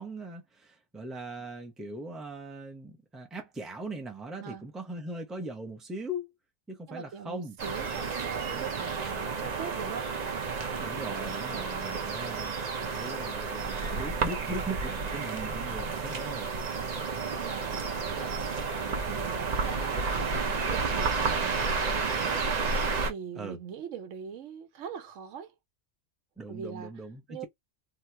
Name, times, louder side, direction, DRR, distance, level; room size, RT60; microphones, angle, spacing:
voice 1, 0.0-6.3 6.7-7.6 10.8-16.5 21.2-21.4 23.4-23.6 26.4-27.5, right 1 dB, ahead, 0.6 m, -40 dB
voice 2, 6.9-10.1 17.3-18.6 18.8-22.4 23.0-25.5 26.5-26.9 27.3-27.5, right 7 dB, 80° right, 1.0 m, -42 dB
sound 1, 7.6-23.1, right 4 dB, 45° right, 0.6 m, -31 dB
2.9 x 2.5 x 3.3 m
omnidirectional pair, 1.3 m